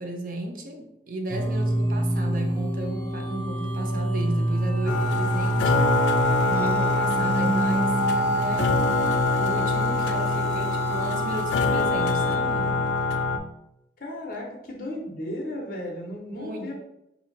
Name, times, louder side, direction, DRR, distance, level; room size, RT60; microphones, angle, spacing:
voice 1, 0.0-6.1 6.4-8.7 9.4-12.8 16.3-16.7, right 2 dB, 50° right, 3 dB, 0.5 m, -34 dB
sound 1, 1.3-12.4, right 1 dB, 10° left, 0.6 m, -28 dB
sound 2, 4.9-13.4, left 2 dB, 80° left, 0.3 m, -24 dB
voice 2, 14.0-16.7, left 1 dB, 50° left, -1 dB, 0.7 m, -35 dB
2.7 x 2.6 x 3.8 m, 0.85 s
head